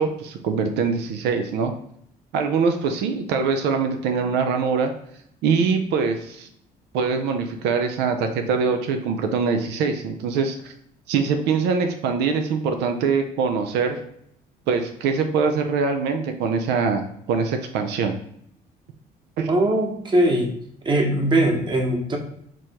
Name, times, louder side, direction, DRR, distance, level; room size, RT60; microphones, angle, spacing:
voice 1, 0.0-1.7 2.3-4.9 5.4-6.5 6.9-10.7 11.1-14.0 14.7-18.2 19.4-19.5, right 5 dB, 85° right, 6 dB, 0.6 m, -23 dB
voice 2, 19.5-20.5 20.8-22.2, right 1 dB, 30° right, 3 dB, 1.1 m, -20 dB
4.8 x 3.0 x 3.5 m, 0.70 s
cardioid pair, 110°, 17 cm